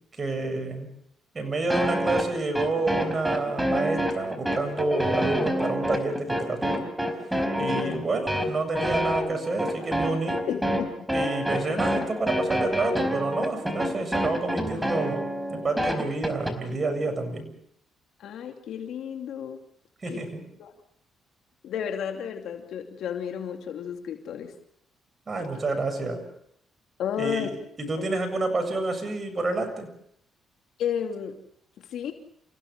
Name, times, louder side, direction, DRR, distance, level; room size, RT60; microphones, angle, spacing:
voice 1, 0.2-0.9 1.3-6.8 7.6-10.4 11.1-17.5 20.0-20.4 25.3-26.2 27.2-27.5 27.8-29.9, right 3 dB, 35° right, 6 dB, 7.5 m, -29 dB
sound 1, 1.7-16.5, equal, 5° right, 4.6 m, -27 dB
voice 2, 7.6-8.1 10.5-11.1 18.2-19.6 20.1-20.2 20.6-20.7 21.6-24.5 27.0-27.5 28.0-28.1 30.8-31.4 31.8-32.1, left 8 dB, 75° left, 4 dB, 2.7 m, -32 dB
29.0 x 16.5 x 7.4 m, 0.71 s
cardioid pair, 90°, 0 cm